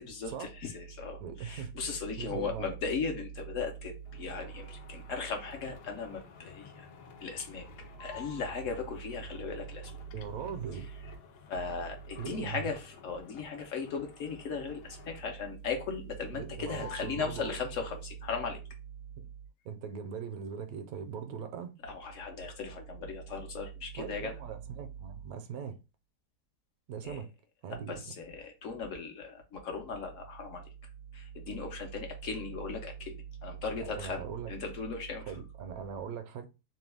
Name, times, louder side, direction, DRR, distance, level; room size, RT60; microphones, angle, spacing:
voice 1, 0.0-6.9 7.2-7.7 8.0-9.9 10.7-11.1 11.5-18.6 21.8-24.3 27.0-27.2 27.7-30.6 31.1-35.3, left 4 dB, 60° left, 0.9 m, -37 dB
voice 2, 1.2-1.7 2.2-2.7 10.1-10.9 12.2-12.7 16.3-17.5 19.2-19.3 19.6-21.7 24.0-25.8 26.9-27.3 27.6-28.0 33.8-34.5 35.3-36.5, right 7 dB, 70° right, 1.0 m, -40 dB
sound 1, 4.0-15.5 15.9-16.4 16.7-18.0, left 6 dB, 85° left, 1.2 m, -52 dB
3.0 x 2.2 x 3.3 m
omnidirectional pair, 1.7 m